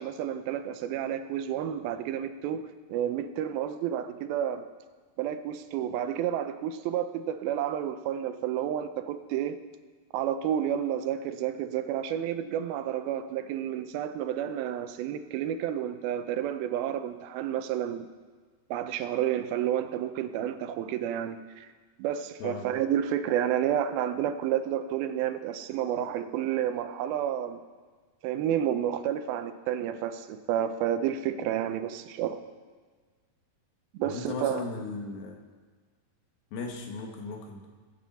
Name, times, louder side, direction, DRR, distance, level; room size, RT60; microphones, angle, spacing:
voice 1, 0.0-2.6 2.9-4.7 5.2-9.6 10.1-18.1 18.7-21.7 22.0-27.6 28.2-32.4 33.9-34.6, right 10 dB, 90° right, 9 dB, 2.6 m, -30 dB
voice 2, 34.0-35.4 36.5-37.7, left 3 dB, 85° left, 2 dB, 3.4 m, -37 dB
20.5 x 9.1 x 4.2 m, 1.5 s
omnidirectional pair, 4.2 m